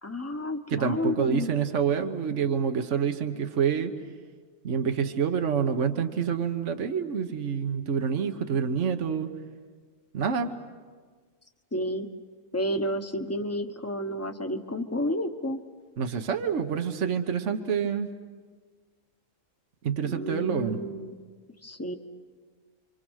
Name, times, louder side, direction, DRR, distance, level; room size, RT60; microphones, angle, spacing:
voice 1, 0.0-1.5 11.7-12.1 12.5-15.6 20.0-21.2 21.6-21.9, left 1 dB, 10° left, 6 dB, 1.1 m, -31 dB
voice 2, 0.7-3.9 4.6-9.3 10.1-10.5 16.0-18.1 19.8-20.8, right 7 dB, 65° right, 7 dB, 1.5 m, -27 dB
30.0 x 25.0 x 6.5 m, 1.5 s
omnidirectional pair, 1.3 m